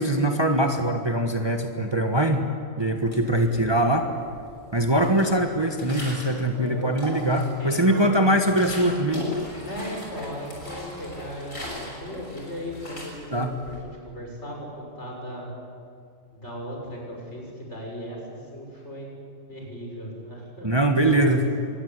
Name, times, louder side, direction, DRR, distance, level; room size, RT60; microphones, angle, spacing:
voice 1, 0.0-2.4 2.8-4.1 4.7-9.4 13.3-13.5 20.6-21.4, right 1 dB, 20° right, 4 dB, 1.4 m, -22 dB
sound 1, 3.0-3.9 4.2-6.4 6.8-7.7 8.1-13.8, left 2 dB, 75° left, 6.6 m, -38 dB
voice 2, 3.3-3.9 6.5-6.9 7.6-8.4 9.1-15.5 16.3-19.1 19.5-20.7 21.1-21.7, equal, 55° left, -1 dB, 6.9 m, -37 dB
24.5 x 20.5 x 9.7 m, 2.3 s
omnidirectional pair, 1.4 m